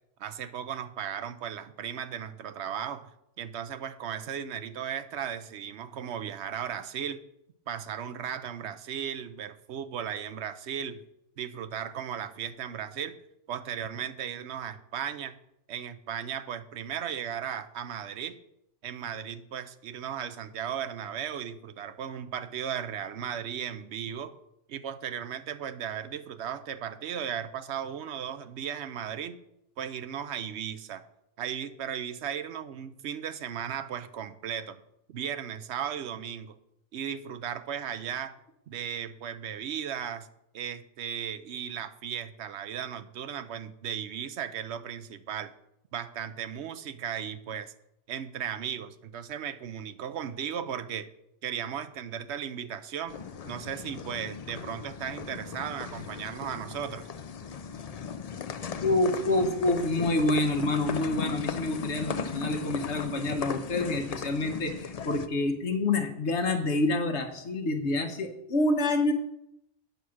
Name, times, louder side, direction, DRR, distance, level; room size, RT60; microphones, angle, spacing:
voice 1, 0.2-3.1 3.4-7.2 7.7-11.0 11.4-13.1 13.5-15.4 15.7-18.4 18.8-24.4 24.7-29.4 29.8-31.0 31.4-34.8 35.1-36.6 36.9-38.4 38.7-40.3 40.5-45.5 45.9-47.7 48.1-51.1 51.4-53.2 53.4-57.1, right 8 dB, 70° right, 12 dB, 0.9 m, -36 dB
sound 1, 53.1-65.3, left 6 dB, 50° left, 0.4 m, -37 dB
voice 2, 58.8-69.1, left 2 dB, 70° left, 6 dB, 1.2 m, -27 dB
9.2 x 5.8 x 6.3 m, 0.81 s
omnidirectional pair, 1.2 m